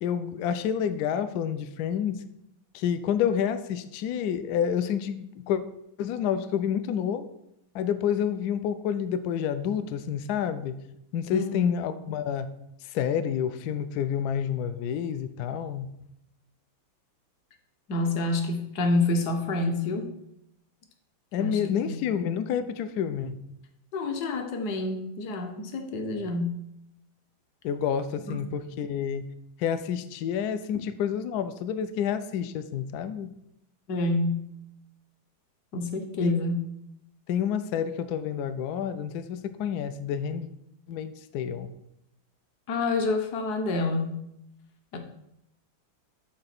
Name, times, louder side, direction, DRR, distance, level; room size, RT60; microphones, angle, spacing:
voice 1, 0.0-2.2 2.7-5.6 6.0-7.3 7.7-10.8 11.1-12.5 12.8-15.9 21.3-23.4 27.6-29.3 29.6-33.3 36.2-36.3 37.3-40.5 40.9-41.7, left 8 dB, 80° left, 11 dB, 0.8 m, -29 dB
voice 2, 11.3-11.7 17.9-20.1 21.4-22.0 23.9-26.5 28.3-28.4 33.9-34.4 35.7-36.6 42.7-44.2 44.9-45.0, left 2 dB, 60° left, 5 dB, 1.3 m, -28 dB
8.0 x 3.3 x 5.8 m, 0.80 s
omnidirectional pair, 2.2 m